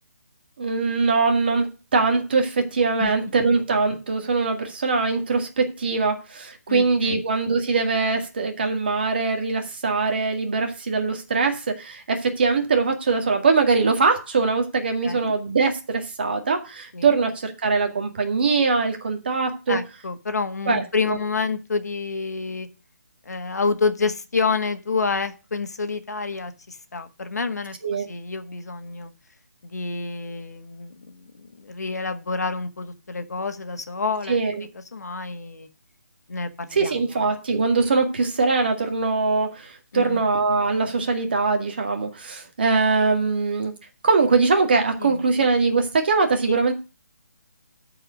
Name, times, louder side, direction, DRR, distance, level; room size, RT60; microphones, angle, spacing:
voice 1, 0.6-19.8 20.7-21.2 27.8-28.1 34.3-34.7 36.7-43.7 44.0-46.7, right 4 dB, 35° right, 4 dB, 2.0 m, -22 dB
voice 2, 6.7-7.2 15.0-15.3 16.9-17.2 19.7-22.7 23.2-29.1 29.6-35.7 36.3-37.2 39.9-40.2 45.0-45.2 46.5-46.6, left 4 dB, 70° left, 9 dB, 1.6 m, -28 dB
13.0 x 4.8 x 6.3 m, 0.30 s
hypercardioid pair, 180°, 9 cm